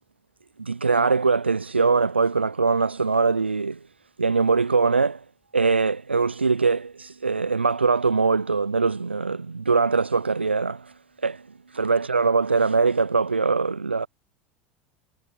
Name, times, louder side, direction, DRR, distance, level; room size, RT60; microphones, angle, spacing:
voice 1, 0.6-3.8 4.2-5.2 5.5-10.9 11.2-11.5 11.7-14.1, right 4 dB, 90° right, 0.5 m, -22 dB
figure-of-eight pair, 75°, 6 cm